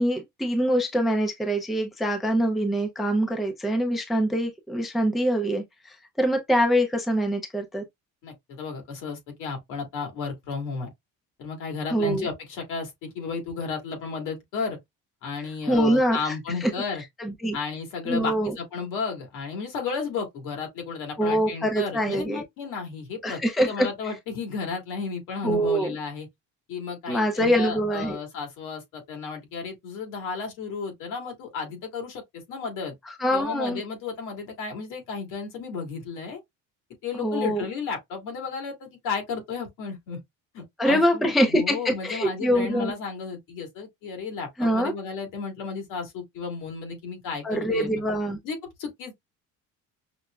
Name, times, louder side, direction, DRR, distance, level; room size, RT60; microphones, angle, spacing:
voice 1, 0.0-7.8 11.9-12.3 15.7-16.4 16.6-16.7 17.2-17.6 18.1-18.5 21.2-22.4 23.2-23.9 25.4-26.0 27.1-28.2 33.1-33.8 37.2-37.6 40.8-42.9 44.6-44.9 47.4-48.4, equal, ahead, 0.4 m, -24 dB
voice 2, 8.2-10.9 11.4-14.8 15.2-17.0 17.5-26.3 26.7-32.2 32.5-32.9 33.3-36.4 37.0-40.2 40.5-48.0 48.4-49.1, left 5 dB, 75° left, 1.9 m, -33 dB
5.7 x 2.0 x 2.3 m
cardioid pair, 170°, 32 cm